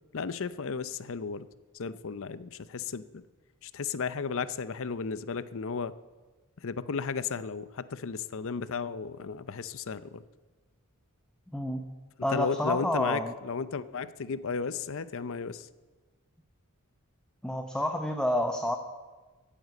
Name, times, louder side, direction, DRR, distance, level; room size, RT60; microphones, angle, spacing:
voice 1, 0.1-1.5 1.7-3.2 3.6-5.9 6.6-10.2 12.3-15.7, left 5 dB, 65° left, 15 dB, 0.6 m, -34 dB
voice 2, 11.5-11.8 12.2-13.3 17.4-18.8, left 1 dB, 5° left, 5 dB, 0.8 m, -29 dB
14.5 x 9.1 x 8.2 m, 1.3 s
head